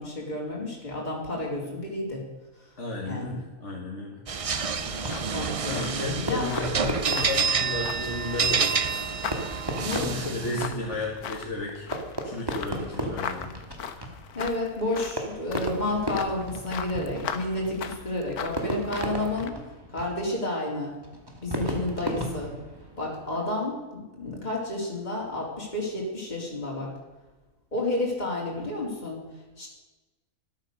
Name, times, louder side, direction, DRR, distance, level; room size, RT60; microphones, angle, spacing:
voice 1, 0.0-2.2 3.0-3.4 5.3-6.5 9.8-10.6 14.3-19.6 19.9-20.9 21.4-22.5 23.0-26.9 27.7-29.2 29.6-29.7, left 2 dB, 30° left, -3 dB, 4.0 m, -31 dB
voice 2, 2.8-4.2 5.6-8.8 9.9-11.9 12.2-13.5, left 2 dB, 50° left, -2 dB, 2.3 m, -33 dB
sound 1, 4.3-10.6, right 5 dB, 50° right, 0.4 m, -28 dB
Fireworks, 4.4-23.2, right 1 dB, 15° right, 2.1 m, -36 dB
sound 2, 4.7-19.5, left 7 dB, 85° left, 1.5 m, -39 dB
13.0 x 12.5 x 6.6 m, 1.2 s
omnidirectional pair, 1.5 m